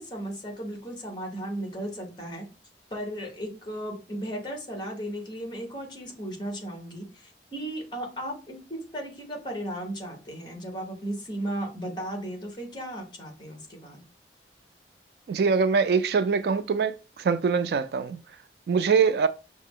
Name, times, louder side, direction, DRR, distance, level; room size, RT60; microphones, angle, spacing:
voice 1, 0.0-2.5 2.9-14.0, right 1 dB, 25° left, 1.2 m, -35 dB
voice 2, 15.3-18.2 18.7-19.3, right 5 dB, 65° right, 0.3 m, -23 dB
5.6 x 2.1 x 3.6 m
head